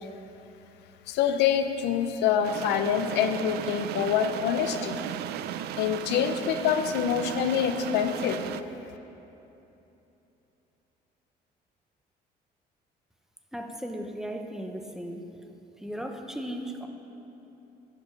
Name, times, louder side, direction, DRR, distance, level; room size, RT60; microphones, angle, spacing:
voice 1, 1.1-5.0 5.8-8.4, left 8 dB, 90° left, 8 dB, 0.6 m, -26 dB
sound 1, 2.4-8.6, right 11 dB, 70° right, 0.4 m, -36 dB
voice 2, 13.5-15.3 15.8-16.9, equal, 5° right, 4 dB, 0.8 m, -36 dB
11.5 x 5.2 x 6.6 m, 3.0 s
cardioid pair, 110°, 17 cm